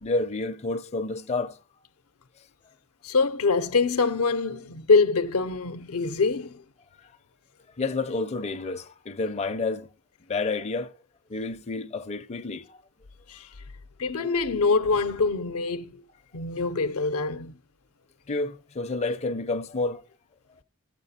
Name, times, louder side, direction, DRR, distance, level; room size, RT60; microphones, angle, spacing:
voice 1, 0.0-1.6 7.8-9.9 10.3-10.9 11.3-12.8 18.3-20.0, left 3 dB, 30° left, 0.5 m, -29 dB
voice 2, 3.0-6.6 13.3-13.5 14.0-16.0 16.3-17.6, left 4 dB, 75° left, 0.6 m, -24 dB
14.0 x 7.5 x 4.1 m
head